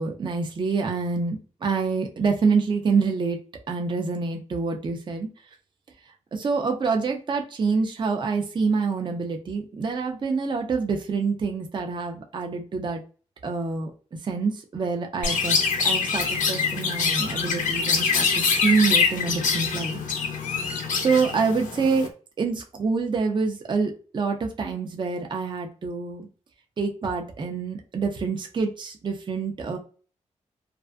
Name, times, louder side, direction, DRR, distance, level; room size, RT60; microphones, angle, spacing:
voice 1, 0.0-3.4 3.7-5.3 6.3-13.0 13.4-13.9 14.2-20.0 21.0-22.1 22.4-26.3 26.8-29.8, right 4 dB, 40° right, 3 dB, 0.5 m, -26 dB
Chirp tweet, 15.2-22.1, left 5 dB, 80° left, 0.6 m, -24 dB
2.4 x 2.4 x 2.2 m, 0.38 s
wide cardioid pair, 125°, 13 cm